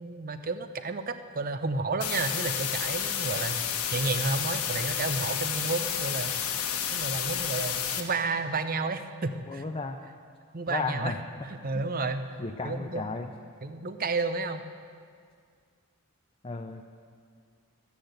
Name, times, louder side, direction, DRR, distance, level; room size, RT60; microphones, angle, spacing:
voice 1, 0.0-3.6 3.9-6.3 6.9-9.6 10.5-11.1 11.6-12.3 12.6-13.0 13.6-14.6, right 3 dB, 40° right, 10 dB, 0.7 m, -31 dB
sound 1, 2.0-8.0, left 8 dB, 85° left, 1.3 m, -31 dB
voice 2, 9.5-10.0 10.7-11.2 11.6-11.8 12.4-13.3 16.4-16.8, left 3 dB, 25° left, 4 dB, 0.5 m, -34 dB
13.0 x 10.5 x 8.0 m, 2.1 s
head